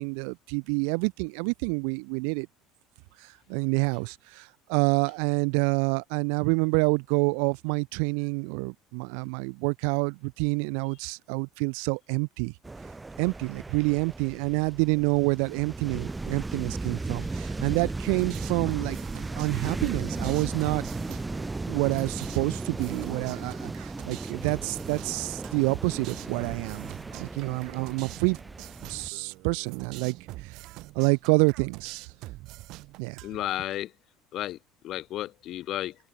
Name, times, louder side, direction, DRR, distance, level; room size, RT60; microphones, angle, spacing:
voice 1, 0.0-2.5 3.2-12.5 13.2-19.0 19.3-20.9 21.7-26.9 27.2-28.4 28.8-30.2 30.4-30.6 30.9-32.1 33.0-33.2, right 40 dB or more, 80° right, 0.9 m, -27 dB
sound 1, 12.6-29.1, right 3 dB, 10° right, 2.1 m, -36 dB
sound 2, 18.1-33.6, right 19 dB, 60° right, 3.8 m, -45 dB
voice 2, 33.2-33.9 34.3-34.6 34.8-36.0, left 14 dB, 50° left, 0.6 m, -32 dB
cardioid pair, 135°, 0 cm